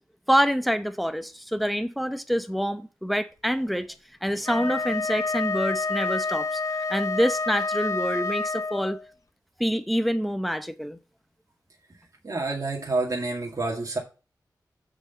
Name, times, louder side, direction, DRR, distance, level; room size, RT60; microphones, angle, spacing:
voice 1, 0.3-3.9 4.2-6.6 6.9-9.0 9.6-11.0, equal, ahead, 0.8 m, -26 dB
Wind instrument woodwind instrument, 4.4-9.0, left 3 dB, 45° left, 0.5 m, -28 dB
voice 2, 12.2-14.0, right 3 dB, 45° right, 2.0 m, -28 dB
6.6 x 5.0 x 6.6 m
wide cardioid pair, 75°, 8 cm